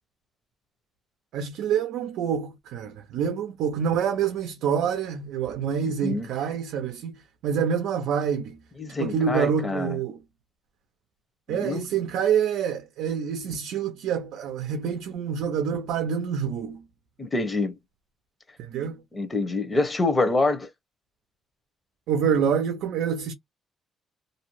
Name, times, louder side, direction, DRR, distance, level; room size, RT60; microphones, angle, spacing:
voice 1, 1.3-8.6 9.0-10.2 11.5-16.8 18.6-19.0 22.1-23.3, right 7 dB, 90° right, 0.5 m, -27 dB
voice 2, 8.8-10.0 11.5-11.8 17.2-17.7 19.1-20.7, left 2 dB, 25° left, 0.8 m, -26 dB
2.6 x 2.0 x 3.0 m
cardioid pair, 90°, 0 cm